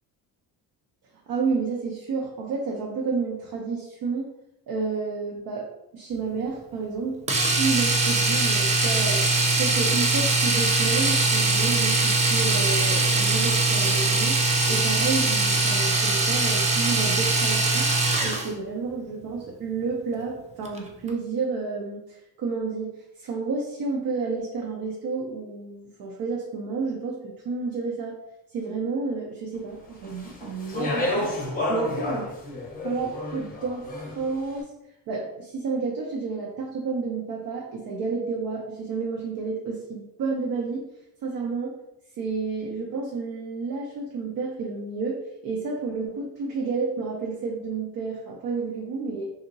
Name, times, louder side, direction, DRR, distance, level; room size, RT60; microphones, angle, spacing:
voice 1, 1.3-4.3 4.7-5.7 5.9-7.2 7.5-9.3 9.6-14.4 14.7-17.9 18.2-28.2 28.5-32.3 32.8-34.7 35.1-40.8 41.2-41.7 42.2-49.3, right 4 dB, 55° right, -1 dB, 0.6 m, -30 dB
Domestic sounds home sounds, 7.3-18.5 20.6-20.8 21.1-21.2, right 3 dB, 20° right, 0.3 m, -22 dB
Speech, 30.0-34.4, left 2 dB, 20° left, 0.7 m, -30 dB
2.8 x 2.7 x 2.6 m, 0.88 s
cardioid pair, 125°, 42 cm